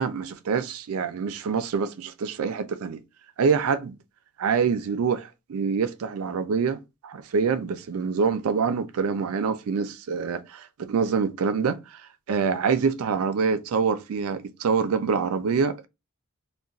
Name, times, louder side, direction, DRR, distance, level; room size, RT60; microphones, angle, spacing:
voice 1, 0.0-3.0 3.4-4.0 4.4-12.0 12.3-15.9, right 5 dB, 85° right, 0.4 m, -26 dB
2.4 x 2.2 x 3.8 m
head